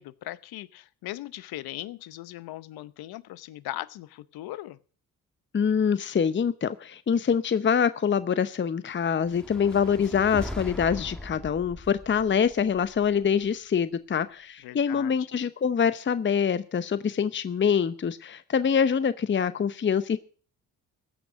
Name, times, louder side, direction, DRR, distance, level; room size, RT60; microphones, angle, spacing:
voice 1, 0.0-4.8 14.6-15.1, left 15 dB, 70° left, 18 dB, 0.8 m, -39 dB
voice 2, 5.5-20.2, left 7 dB, 30° left, 14 dB, 0.8 m, -25 dB
sound 1, 9.2-13.5, left 1 dB, ahead, 1.9 m, -40 dB
15.0 x 6.2 x 8.0 m, 0.42 s
supercardioid pair, 55°, 38 cm